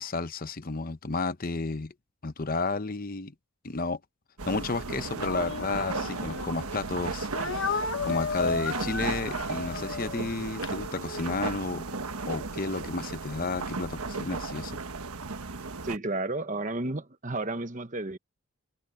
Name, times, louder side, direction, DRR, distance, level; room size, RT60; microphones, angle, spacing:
voice 1, 0.0-1.9 2.2-3.3 3.6-4.0 4.5-12.0 12.3-14.8, left 3 dB, 40° left, 0.9 m, -32 dB
sound 1, 4.4-16.0, right 4 dB, 85° right, 1.4 m, -35 dB
Speech, 5.1-6.7 7.3-11.4, left 4 dB, 60° left, 1.3 m, -34 dB
voice 2, 15.8-18.2, right 2 dB, 35° right, 1.1 m, -32 dB
head